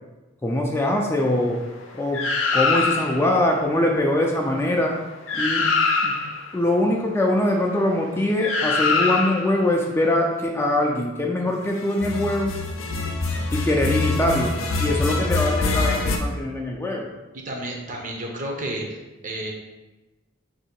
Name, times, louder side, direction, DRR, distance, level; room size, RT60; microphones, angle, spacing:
voice 1, 0.4-1.6 1.9-2.2 2.5-5.0 5.3-5.7 6.0-6.2 6.5-12.5 13.5-14.5 14.8-17.1, left 1 dB, 10° left, 0 dB, 0.3 m, -22 dB
sound 1, 2.1-3.3 4.9-5.0 5.3-6.4 8.4-9.6 11.9-16.2, left 3 dB, 90° left, 0.5 m, -24 dB
voice 2, 17.3-19.0 19.2-19.5, right 1 dB, 40° right, 0 dB, 0.7 m, -31 dB
3.0 x 2.7 x 4.3 m, 1.1 s
head